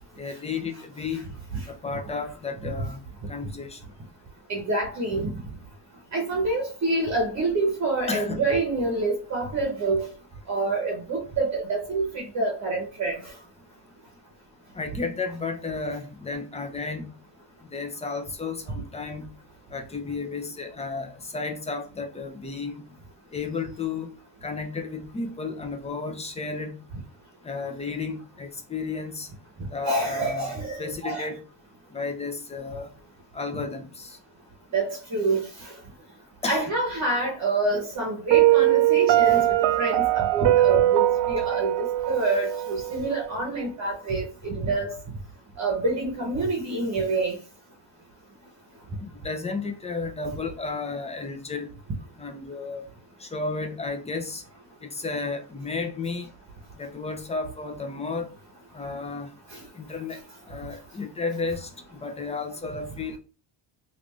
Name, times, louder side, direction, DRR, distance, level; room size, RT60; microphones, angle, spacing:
voice 1, 0.2-1.2 1.7-3.0 3.3-3.8 8.1-8.4 14.7-17.1 17.7-19.3 19.7-22.9 23.3-24.1 24.4-26.8 27.4-29.3 29.7-30.5 30.8-31.4 31.9-32.9 33.3-34.2 36.4-36.7 49.0-51.7 52.2-52.9 53.2-54.4 54.8-56.3 56.8-58.3 58.7-59.3 59.7-60.2 60.5-63.2, left 4 dB, 15° left, 0.6 m, -33 dB
voice 2, 4.5-5.3 6.1-10.1 10.5-13.2 29.8-31.3 34.7-35.4 36.4-39.5 39.8-41.7 42.1-44.9 45.6-47.3, right 2 dB, 40° right, 1.0 m, -27 dB
Piano, 38.3-43.2, right 14 dB, 75° right, 0.5 m, -21 dB
3.3 x 2.6 x 3.1 m
cardioid pair, 110°, 45 cm